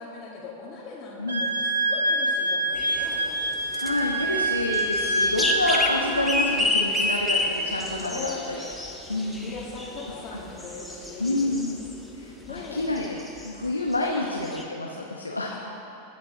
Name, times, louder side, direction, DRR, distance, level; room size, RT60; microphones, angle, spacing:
voice 1, 0.0-3.4 5.9-6.1 7.2-7.4 7.9-11.6 12.4-12.9 14.1-14.3 15.5-15.7, left 4 dB, 30° left, -5 dB, 1.9 m, -40 dB
Wind instrument woodwind instrument, 1.3-6.0, right 1 dB, 70° right, 1.4 m, -26 dB
sound 1, 2.7-12.1 12.4-13.6 13.9-14.0 14.2-14.6, left 2 dB, 5° left, 1.3 m, -30 dB
voice 2, 3.8-8.3 9.1-9.5 11.2-11.8 12.1-13.2 13.4-15.5, left 2 dB, 80° left, -1 dB, 0.9 m, -28 dB
21.5 x 7.2 x 3.8 m, 3.0 s
figure-of-eight pair, 90°, 0 cm